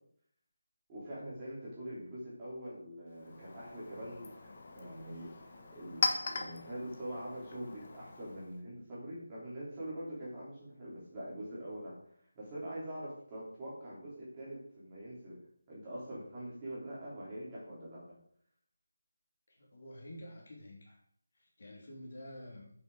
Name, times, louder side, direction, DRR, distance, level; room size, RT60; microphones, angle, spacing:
voice 1, 0.9-12.0 12.4-15.4 15.7-18.2, right 1 dB, 15° right, -9 dB, 3.6 m, -44 dB
Chink clink, 3.1-8.6, left 3 dB, 30° left, 1.2 m, -40 dB
voice 2, 19.5-21.0 21.6-22.7, left 1 dB, 45° left, -1 dB, 3.1 m, -49 dB
8.5 x 7.3 x 5.0 m, 0.66 s
figure-of-eight pair, 175°, 0 cm